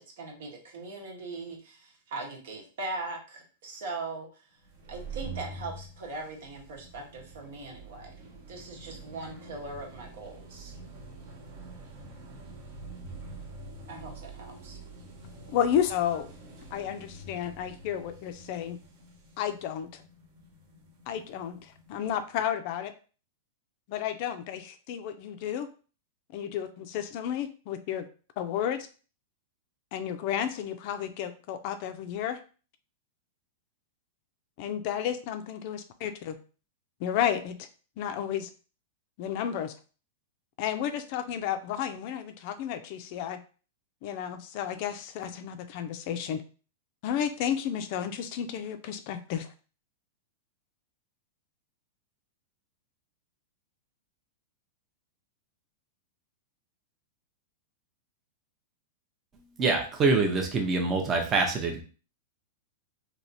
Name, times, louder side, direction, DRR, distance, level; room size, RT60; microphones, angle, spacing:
voice 1, 0.0-4.3 4.9-8.1 8.5-10.7 13.9-14.8, right 3 dB, 70° right, 0 dB, 1.2 m, -40 dB
sound 1, 4.6-22.0, right 3 dB, 45° right, 0.9 m, -46 dB
voice 2, 15.5-16.3 16.7-18.8 19.4-20.0 21.1-22.9 23.9-25.7 26.3-28.1 28.4-28.9 29.9-32.4 34.6-36.4 37.0-37.7 38.0-38.5 39.2-39.7 40.6-43.4 44.0-46.4 47.0-49.5, left 9 dB, 45° left, 8 dB, 0.4 m, -32 dB
voice 3, 59.6-61.8, right 3 dB, 20° right, 3 dB, 0.6 m, -25 dB
3.2 x 2.8 x 2.7 m, 0.37 s
supercardioid pair, 155°, 0 cm